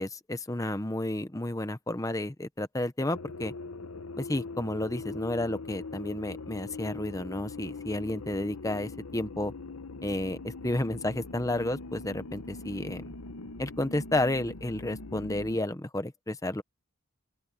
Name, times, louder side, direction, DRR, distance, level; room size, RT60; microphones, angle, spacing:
voice 1, 0.0-3.5 4.2-9.5 10.0-13.1 13.6-16.6, left 1 dB, 15° left, 0.9 m, -31 dB
sound 1, 3.1-15.6, left 3 dB, 90° left, 1.1 m, -42 dB
open air
head